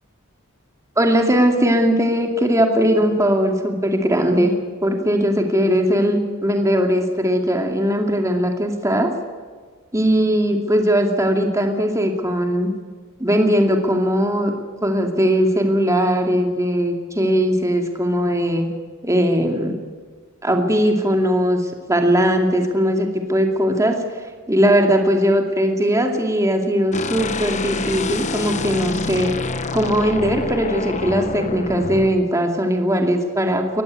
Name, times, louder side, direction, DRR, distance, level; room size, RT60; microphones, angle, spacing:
voice 1, 1.0-4.5 4.8-9.1 9.9-12.7 13.2-14.5 14.8-18.7 19.0-19.7 20.4-21.6 21.9-24.0 24.5-29.3 29.7-33.8, equal, 15° right, 3 dB, 2.4 m, -19 dB
sound 1, 26.9-32.2, left 3 dB, 35° left, 1.2 m, -27 dB
20.5 x 14.5 x 9.7 m, 1.6 s
head